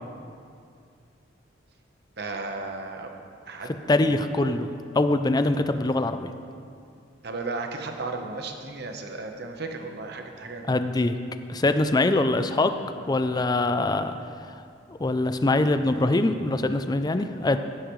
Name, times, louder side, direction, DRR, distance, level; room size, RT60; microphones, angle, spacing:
voice 1, 2.2-3.1 3.5-4.2 7.2-10.8, right 3 dB, 60° right, 4 dB, 1.0 m, -35 dB
voice 2, 3.9-4.7 4.9-6.3 10.7-11.1 11.5-12.7 13.1-14.1 15.0-17.6, left 2 dB, 20° left, 9 dB, 0.4 m, -23 dB
15.0 x 10.0 x 3.2 m, 2.4 s
head